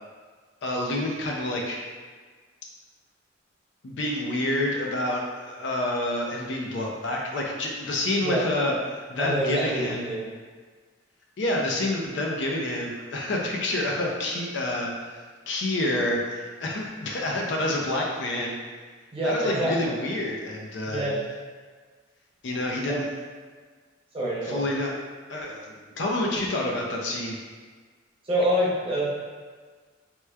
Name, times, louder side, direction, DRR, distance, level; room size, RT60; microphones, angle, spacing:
voice 1, 0.6-1.9 3.8-10.1 11.4-18.5 19.2-21.1 22.4-23.0 24.4-24.9 25.3-27.4, left 1 dB, 65° left, -1 dB, 0.5 m, -28 dB
voice 2, 9.2-10.3 19.1-19.9 20.9-21.2 22.9-23.1 24.1-24.6 28.2-29.1, equal, 30° right, -7 dB, 0.7 m, -26 dB
3.2 x 3.0 x 2.3 m, 1.5 s
head